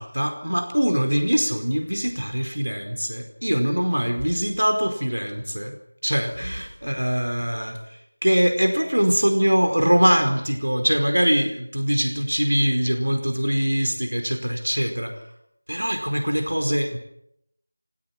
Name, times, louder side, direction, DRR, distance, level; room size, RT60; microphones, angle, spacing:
voice 1, 0.0-5.8 6.0-15.2 15.7-17.0, equal, 90° right, 5 dB, 4.7 m, -23 dB
27.0 x 16.5 x 7.4 m, 0.75 s
figure-of-eight pair, 175°, 0 cm